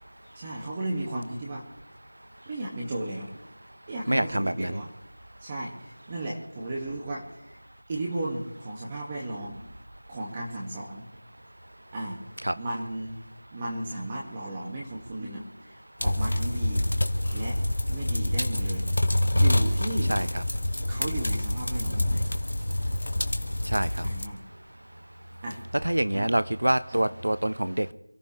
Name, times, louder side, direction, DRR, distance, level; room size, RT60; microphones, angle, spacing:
voice 1, 0.4-1.7 2.5-3.3 3.9-4.9 5.4-7.6 7.9-9.6 10.1-11.1 11.9-12.2 12.6-13.2 13.5-16.9 17.3-17.6 17.9-18.9 19.3-20.1 20.9-22.2 24.0-24.4 25.4-25.6 26.1-26.3 26.9-27.0, right 1 dB, 20° right, -3 dB, 2.0 m, -35 dB
voice 2, 4.1-4.8 12.4-12.5 20.1-20.4 23.7-24.0 25.8-27.9, right 1 dB, 75° right, 14 dB, 1.0 m, -26 dB
sound 1, 16.0-24.2, left 1 dB, 60° left, 1.8 m, -26 dB
28.0 x 14.5 x 3.3 m, 0.80 s
figure-of-eight pair, 170°, 0 cm